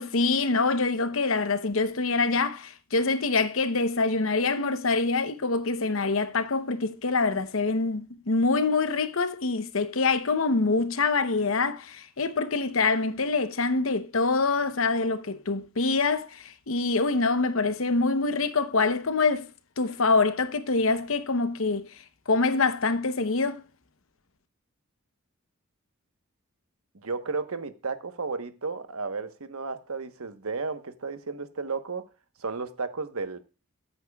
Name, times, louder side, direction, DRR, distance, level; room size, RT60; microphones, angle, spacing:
voice 1, 0.0-19.5 19.8-21.9 22.3-23.6, left 3 dB, 70° left, 0.9 m, -25 dB
voice 2, 26.9-32.1 32.4-33.4, right 4 dB, 85° right, 1.2 m, -33 dB
14.0 x 8.9 x 2.4 m
head